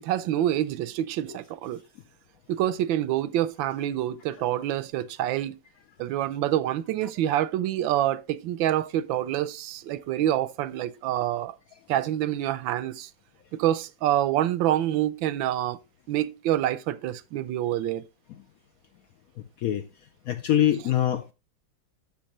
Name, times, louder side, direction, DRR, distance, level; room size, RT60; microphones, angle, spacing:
voice 1, 0.0-1.8 2.5-5.6 6.0-11.5 11.9-13.1 13.5-15.8 16.1-18.0, right 12 dB, 90° right, 1.4 m, -27 dB
voice 2, 20.3-21.3, left 11 dB, 70° left, 0.8 m, -23 dB
12.0 x 6.8 x 3.0 m
omnidirectional pair, 2.0 m